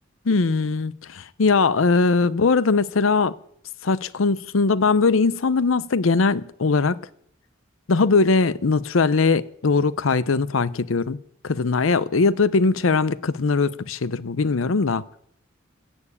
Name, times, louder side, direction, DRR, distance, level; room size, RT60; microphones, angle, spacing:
voice 1, 0.3-3.3 3.8-7.0 7.9-11.2 11.4-15.0, left 4 dB, 75° left, 0.6 m, -20 dB
15.5 x 7.2 x 8.5 m
head